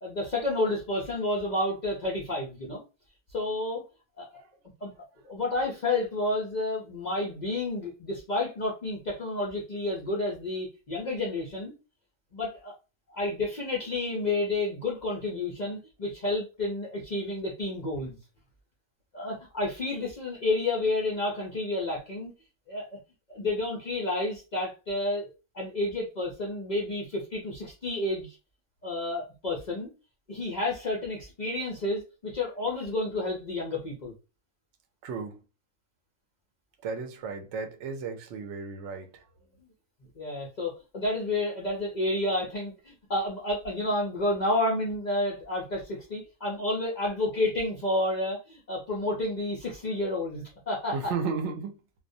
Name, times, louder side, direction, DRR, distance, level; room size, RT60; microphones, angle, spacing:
voice 1, 0.0-2.8 3.3-3.9 4.2-4.3 4.8-4.9 5.2-11.7 12.3-12.7 13.1-18.2 19.1-22.3 22.7-23.0 23.3-28.4 28.8-29.9 30.3-34.1 40.2-51.1, left 2 dB, 60° left, 0.4 m, -30 dB
voice 2, 35.0-35.4 36.8-39.3 50.9-51.8, right 5 dB, 65° right, 0.8 m, -34 dB
2.3 x 2.1 x 2.5 m
omnidirectional pair, 1.4 m